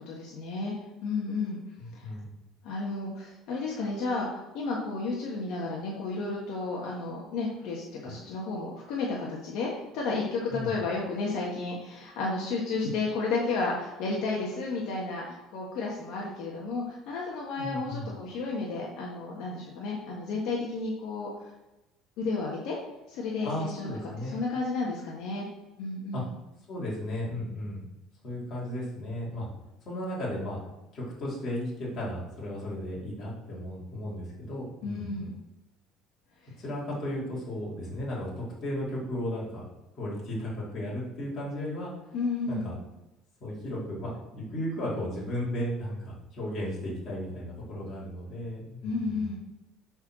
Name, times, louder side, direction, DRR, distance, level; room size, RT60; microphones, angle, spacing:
voice 1, 0.1-0.7 1.0-1.6 1.9-2.1 2.6-9.7 9.9-21.3 22.2-22.8 23.1-23.9 24.3-25.5 25.8-26.3 34.8-35.3 42.1-42.7 48.8-49.4, left 3 dB, 55° left, -4 dB, 1.5 m, -32 dB
voice 2, 1.8-2.3 8.0-8.1 10.5-10.7 17.5-18.1 23.4-24.4 26.1-26.2 26.7-27.8 28.2-29.5 29.8-30.6 30.9-35.3 36.6-39.7 39.9-41.9 42.5-42.7 43.4-49.3, left 1 dB, 30° left, -6 dB, 3.2 m, -35 dB
8.1 x 4.3 x 6.2 m, 0.99 s
cardioid pair, 175°, 0 cm